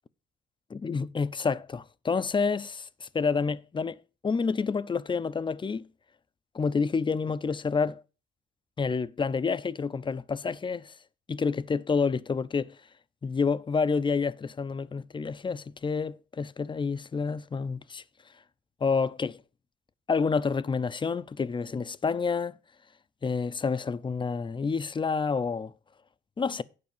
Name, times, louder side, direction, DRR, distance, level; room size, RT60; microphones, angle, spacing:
voice 1, 0.7-4.0 4.2-5.9 6.5-8.0 8.8-10.9 11.3-12.7 13.2-18.0 18.8-19.4 20.1-22.6 23.2-25.7 26.4-26.6, left 5 dB, 25° left, 0.5 m, -28 dB
9.5 x 4.6 x 7.2 m
cardioid pair, 90°, 20 cm